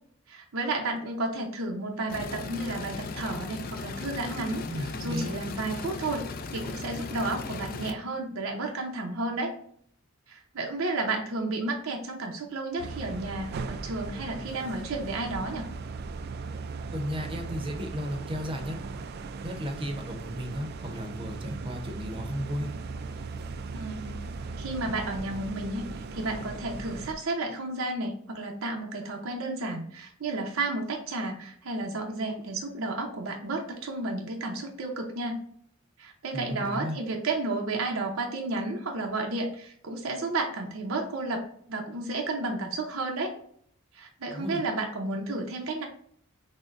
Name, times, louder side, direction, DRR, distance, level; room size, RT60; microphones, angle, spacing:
voice 1, 0.3-6.3 6.5-9.5 10.3-15.7 23.7-24.2 24.6-35.4 36.0-41.4 41.7-43.3 43.9-45.8, right 2 dB, 85° right, 1 dB, 0.7 m, -32 dB
sound 1, 2.1-7.9, left 3 dB, 45° left, 0.4 m, -37 dB
voice 2, 4.7-5.3 16.9-18.8 19.4-22.7 36.3-37.0 44.3-44.6, equal, 25° right, 4 dB, 0.7 m, -34 dB
sound 2, 12.8-27.1, right 4 dB, 50° right, 0.3 m, -38 dB
6.1 x 2.2 x 2.5 m, 0.63 s
head